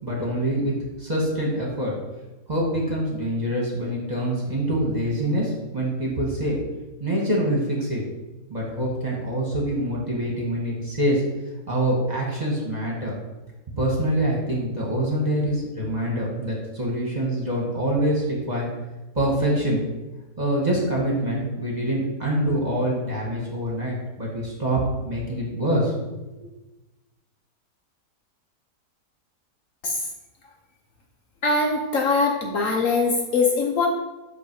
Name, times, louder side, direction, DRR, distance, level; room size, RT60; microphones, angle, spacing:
voice 1, 0.0-0.7 1.0-1.9 2.5-6.6 7.0-8.0 8.5-11.2 11.7-13.2 13.8-18.7 19.1-19.8 20.4-24.8 25.0-26.2, right 1 dB, 25° right, -3 dB, 1.6 m, -25 dB
voice 2, 31.4-33.9, left 3 dB, 60° left, 1 dB, 1.1 m, -22 dB
8.5 x 3.2 x 6.1 m, 1.1 s
omnidirectional pair, 1.7 m